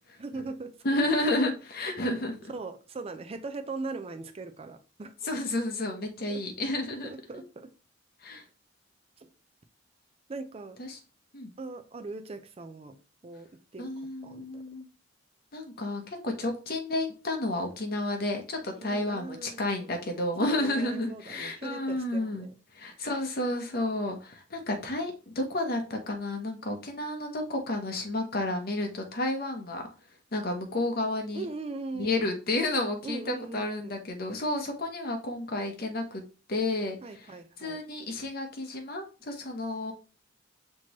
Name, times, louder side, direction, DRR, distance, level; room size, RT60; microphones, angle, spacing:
voice 1, 0.2-1.0 2.5-5.1 6.3-6.4 7.0-7.7 9.2-9.3 10.3-10.8 11.6-13.0 13.2-14.6 18.7-19.8 20.4-22.6 31.3-32.3 33.0-33.9 37.0-37.8, right 3 dB, 35° right, 7 dB, 0.5 m, -40 dB
voice 2, 0.8-2.4 5.2-7.4 8.2-8.4 10.8-11.0 11.3-11.5 13.8-14.9 15.5-22.5 22.7-29.8 30.3-31.4 32.0-36.2 36.5-37.0 37.6-39.9, left 2 dB, 55° left, 4 dB, 1.0 m, -31 dB
5.9 x 3.0 x 3.0 m, 0.34 s
head